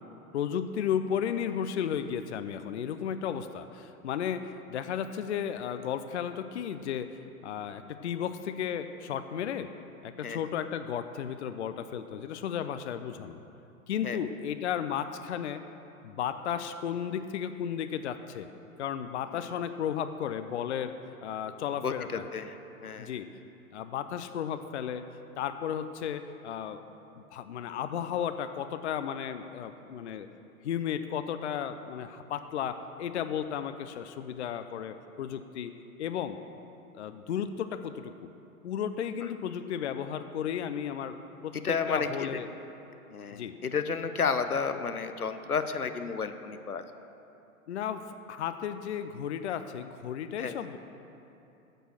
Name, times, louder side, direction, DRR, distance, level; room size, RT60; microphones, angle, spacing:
voice 1, 0.3-9.7 10.0-13.4 13.9-15.6 16.0-18.5 18.8-20.9 21.2-22.3 23.0-23.3 23.7-25.0 25.4-26.9 27.1-30.3 30.6-35.7 36.0-36.4 36.9-38.1 38.6-41.2 41.4-41.6 41.9-42.5 43.3-43.5 47.7-48.0 48.3-50.8, left 8 dB, 50° left, 10 dB, 0.6 m, -34 dB
voice 2, 21.8-22.5 22.8-23.1 41.6-42.3 43.1-46.8 50.4-50.6, left 5 dB, 85° left, 9 dB, 0.8 m, -31 dB
10.5 x 7.8 x 6.4 m, 2.8 s
figure-of-eight pair, 110°, 44 cm